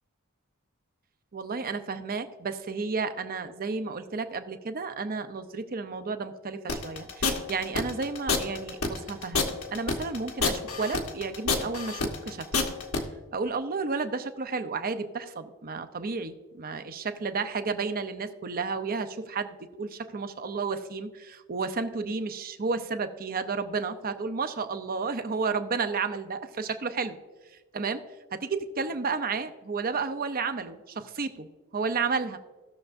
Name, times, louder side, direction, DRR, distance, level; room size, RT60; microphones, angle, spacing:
voice 1, 1.3-12.5 13.3-27.1 27.7-28.0 28.3-31.5 31.7-32.4, right 4 dB, 45° right, 9 dB, 0.7 m, -32 dB
sound 1, 6.7-13.0, left 4 dB, 70° left, 1.3 m, -27 dB
17.5 x 6.7 x 2.6 m, 1.3 s
head